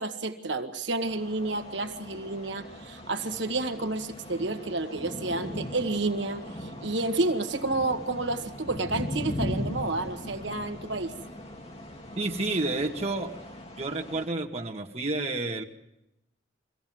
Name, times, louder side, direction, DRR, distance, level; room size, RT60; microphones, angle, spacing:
voice 1, 0.0-11.1, right 2 dB, 65° right, 7 dB, 1.6 m, -30 dB
sound 1, 1.0-14.3, left 1 dB, 30° left, 2.8 m, -39 dB
voice 2, 12.2-13.3 13.8-15.6, right 2 dB, 35° right, 2 dB, 2.0 m, -30 dB
24.5 x 16.0 x 7.8 m, 0.89 s
head